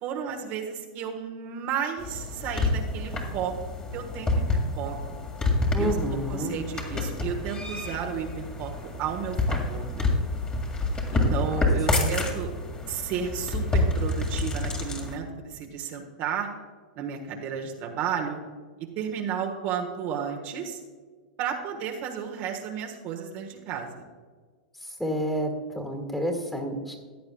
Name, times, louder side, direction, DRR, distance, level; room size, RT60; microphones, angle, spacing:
voice 1, 0.0-3.5 3.9-5.0 5.8-5.9 6.3-8.7 9.0-10.1 11.1-12.5 12.9-16.5 16.9-18.4 18.8-20.8 21.4-24.0, right 7 dB, 50° right, 1 dB, 1.3 m, -33 dB
sound 1, 2.0-15.2, left 2 dB, 20° left, 2.0 m, -28 dB
voice 2, 5.7-6.6 11.9-12.2 24.8-26.9, equal, 5° left, 3 dB, 1.9 m, -30 dB
15.0 x 9.3 x 2.3 m, 1.5 s
hypercardioid pair, 105°, 4 cm